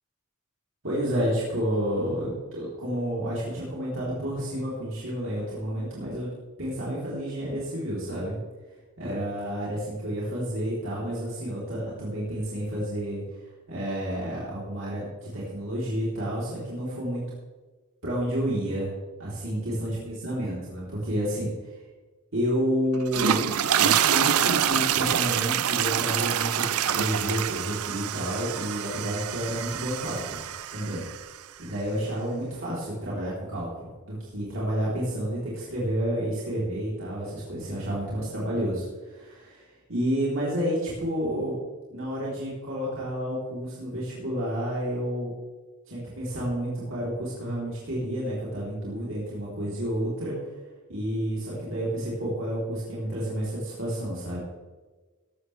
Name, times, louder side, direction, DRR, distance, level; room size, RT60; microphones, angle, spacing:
voice 1, 0.8-6.3 6.6-8.4 9.0-13.2 13.7-17.3 18.0-18.9 19.2-21.7 22.3-30.4 30.7-31.1 31.6-41.6 41.9-45.3 45.9-50.4 50.9-54.4, equal, 60° right, -7 dB, 3.7 m, -30 dB
sound 1, 22.9-31.3, right 10 dB, 90° right, 0.5 m, -26 dB
16.5 x 12.5 x 3.4 m, 1.3 s
head